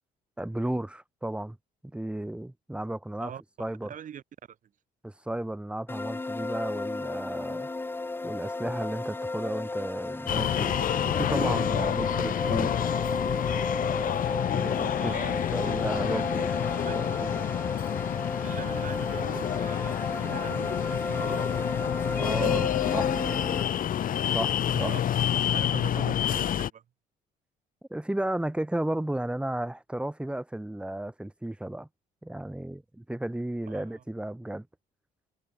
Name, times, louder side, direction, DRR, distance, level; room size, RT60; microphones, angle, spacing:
voice 1, 0.4-1.6 1.9-3.3 3.6-3.9 5.0-7.7 8.2-12.7 14.5-15.2 15.5-16.5 16.9-17.4 22.2-23.1 24.3-24.9 27.9-31.9 32.2-34.7, right 1 dB, 5° right, 5.2 m, -33 dB
voice 2, 3.9-4.2 4.5-4.6 11.7-11.9 15.0-15.7 16.1-16.2 16.8-17.2 18.4-21.8 22.0-23.0 24.7-25.0 25.3-26.8 33.7-34.0, right 9 dB, 50° right, 7.1 m, -42 dB
sound 1, 5.9-23.6, left 2 dB, 15° left, 1.0 m, -34 dB
sound 2, 10.3-26.7, left 10 dB, 55° left, 2.9 m, -28 dB
cardioid pair, 110°, 17 cm